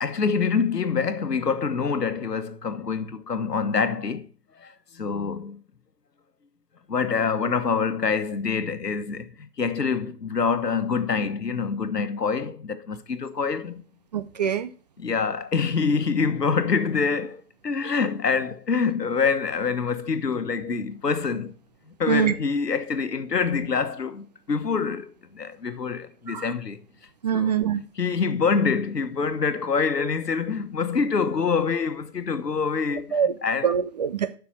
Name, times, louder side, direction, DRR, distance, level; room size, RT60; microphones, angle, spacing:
voice 1, 0.0-4.3 4.6-5.6 6.9-13.8 15.0-21.5 22.0-26.8 27.3-27.5 28.0-33.7, left 5 dB, 90° left, 1.3 m, -26 dB
voice 2, 14.1-14.7 22.1-22.3 26.3-26.4 27.2-27.8 33.1-33.3 33.6-34.4, right 8 dB, 30° right, 0.4 m, -24 dB
11.5 x 5.9 x 4.4 m
figure-of-eight pair, 120°, 47 cm